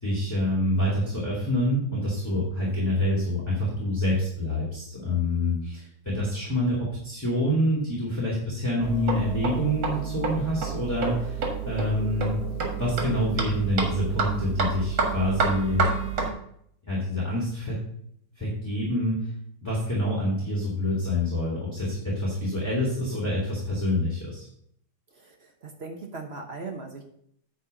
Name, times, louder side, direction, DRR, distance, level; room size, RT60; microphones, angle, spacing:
voice 1, 0.0-12.4 12.7-15.9 16.8-17.8 18.4-19.3 19.6-24.5, left 1 dB, 10° left, -4 dB, 2.3 m, -27 dB
sound 1, 8.8-16.3, right 5 dB, 75° right, 2.4 m, -29 dB
voice 2, 25.1-27.0, right 3 dB, 45° right, 3 dB, 0.9 m, -39 dB
9.3 x 4.3 x 6.5 m, 0.69 s
omnidirectional pair, 2.2 m